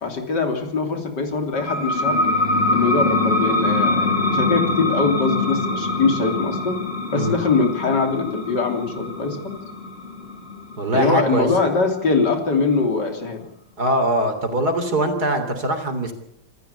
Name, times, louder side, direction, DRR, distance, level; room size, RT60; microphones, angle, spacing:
voice 1, 0.0-2.4 2.7-6.8 7.1-9.6 10.9-13.4, left 4 dB, 70° left, 5 dB, 3.8 m, -22 dB
sound 1, 1.5-12.8, left 2 dB, 35° left, 2.9 m, -24 dB
voice 2, 10.8-11.5 13.8-16.1, right 1 dB, 55° right, 7 dB, 3.8 m, -22 dB
27.5 x 14.0 x 8.3 m, 0.74 s
omnidirectional pair, 2.0 m